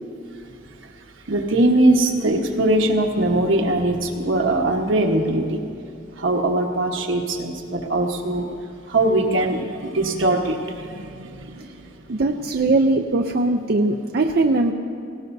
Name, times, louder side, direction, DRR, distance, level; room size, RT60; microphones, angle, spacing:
voice 1, 1.3-5.6 6.2-8.5 8.9-12.2, right 1 dB, 80° right, 1 dB, 1.3 m, -21 dB
voice 2, 12.1-14.7, right 2 dB, 55° right, 3 dB, 0.5 m, -20 dB
18.0 x 17.0 x 2.7 m, 2.6 s
head